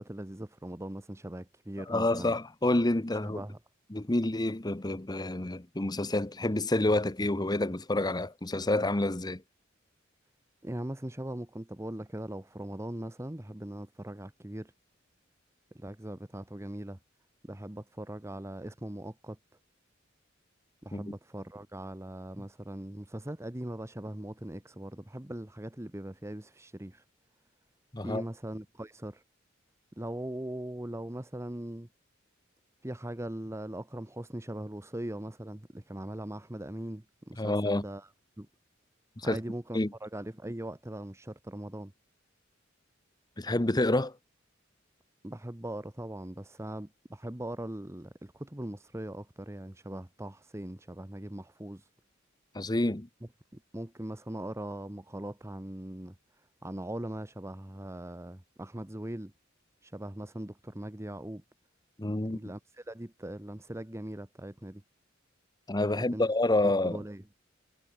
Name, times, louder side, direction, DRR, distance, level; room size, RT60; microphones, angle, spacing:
voice 1, 0.0-2.3 3.2-3.6 10.6-14.7 15.7-17.0 17.4-19.4 20.8-27.0 28.0-29.2 30.0-31.9 32.8-38.1 38.4-38.5 39.2-41.9 45.2-51.9 53.5-56.1 56.6-59.3 59.8-61.4 62.3-64.8 66.0-66.3 66.6-67.2, right 1 dB, 15° right, 1.0 m, -40 dB
voice 2, 1.9-3.4 3.9-9.4 20.9-21.1 27.9-28.2 37.4-37.8 39.2-39.4 39.7-39.9 43.4-44.2 52.5-53.1 62.0-62.4 65.7-67.0, left 2 dB, 20° left, 1.0 m, -28 dB
head